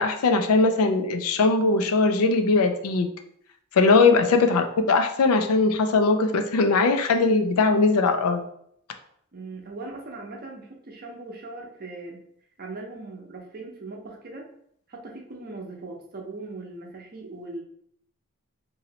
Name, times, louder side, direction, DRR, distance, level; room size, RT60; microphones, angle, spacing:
voice 1, 0.0-3.1 3.7-8.4, left 3 dB, 75° left, 7 dB, 0.4 m, -20 dB
voice 2, 9.3-12.2 12.6-14.5 14.9-17.6, right 2 dB, 40° right, 1 dB, 0.6 m, -39 dB
3.0 x 2.7 x 2.8 m, 0.68 s
head